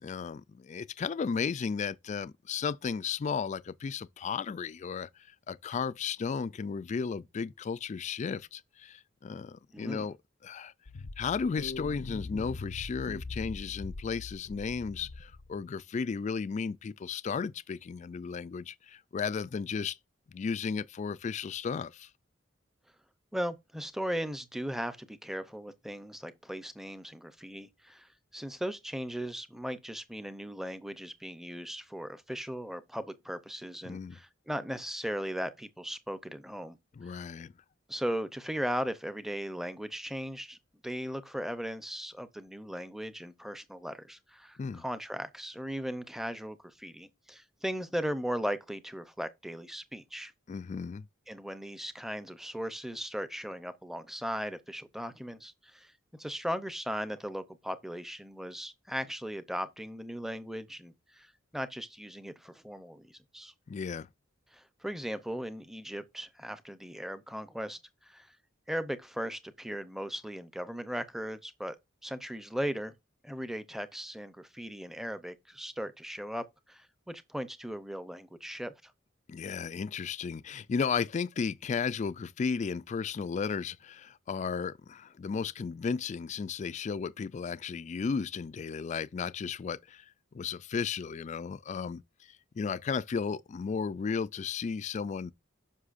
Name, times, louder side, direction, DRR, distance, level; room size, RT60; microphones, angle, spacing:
voice 1, 0.0-10.2 10.4-10.7 11.2-20.0 20.3-22.1 33.8-34.2 37.0-37.5 44.6-44.8 50.5-51.1 63.7-64.1 79.3-95.3, left 5 dB, 35° left, 0.3 m, -34 dB
voice 2, 9.7-10.1 23.3-36.8 37.0-37.2 37.9-40.6 40.8-50.3 51.3-55.9 56.2-63.5 64.5-68.3 68.7-71.8 72.0-72.9 73.2-78.9, equal, ahead, 0.6 m, -38 dB
sound 1, 10.9-15.5, left 3 dB, 85° left, 0.7 m, -41 dB
9.7 x 6.1 x 2.5 m
head